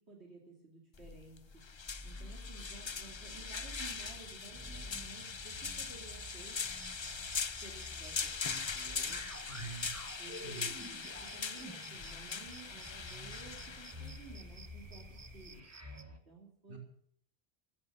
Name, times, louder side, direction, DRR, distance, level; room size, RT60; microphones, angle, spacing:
voice 1, 0.0-1.4 2.0-6.6 7.6-9.4 10.2-15.7 16.1-16.8, right 3 dB, 70° right, -2 dB, 3.0 m, -54 dB
sound 1, 0.9-15.6, left 5 dB, 35° left, 0.5 m, -41 dB
sound 2, 1.9-16.2, equal, 15° right, 1.5 m, -51 dB
sound 3, 6.6-16.0, right 4 dB, 35° right, 1.0 m, -56 dB
voice 2, 9.5-9.9 10.3-10.7 16.7-16.8, right 4 dB, 50° right, 0 dB, 4.1 m, -45 dB
16.0 x 11.0 x 6.8 m, 0.63 s
omnidirectional pair, 1.2 m